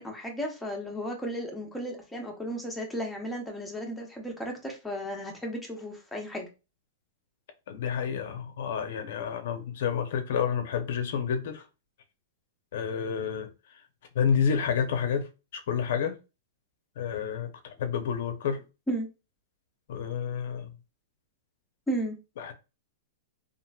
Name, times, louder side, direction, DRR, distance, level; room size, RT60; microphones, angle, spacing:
voice 1, 0.0-6.5 18.9-19.1 21.9-22.2, equal, 5° left, 0.8 m, -34 dB
voice 2, 7.7-11.7 12.7-13.5 14.1-16.2 17.0-18.6 19.9-20.7 22.4-22.5, left 7 dB, 65° left, 0.6 m, -29 dB
3.1 x 2.5 x 2.3 m
hypercardioid pair, 140°, 0 cm